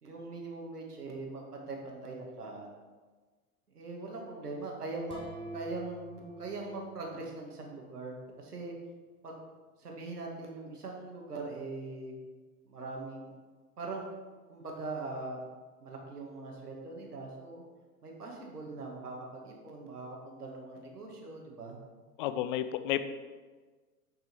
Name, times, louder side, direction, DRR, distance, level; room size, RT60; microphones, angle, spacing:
voice 1, 0.0-2.7 3.7-5.2 5.5-8.7 9.2-9.4 9.8-12.2 12.6-13.3 13.8-14.1 14.5-15.4 15.8-17.6 18.0-21.8, right 3 dB, 75° right, 0 dB, 2.2 m, -41 dB
sound 1, 5.1-7.9, equal, 10° left, 1.6 m, -47 dB
voice 2, 22.2-23.0, left 12 dB, 35° left, 11 dB, 0.5 m, -31 dB
8.9 x 6.3 x 4.6 m, 1.4 s
figure-of-eight pair, 95°, 46 cm